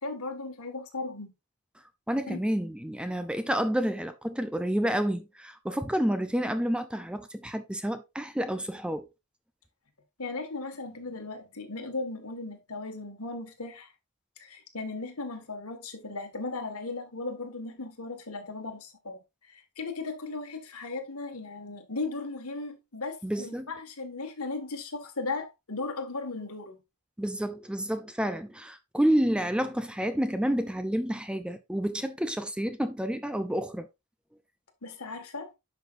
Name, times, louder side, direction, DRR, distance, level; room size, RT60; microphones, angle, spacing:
voice 1, 0.0-1.3 2.3-2.4 10.2-13.9 14.4-19.2 19.5-26.8 34.8-35.5, left 3 dB, 80° left, 1.9 m, -37 dB
voice 2, 2.1-9.1 23.2-23.7 27.2-33.9, equal, 5° right, 0.6 m, -29 dB
10.5 x 6.1 x 2.6 m
head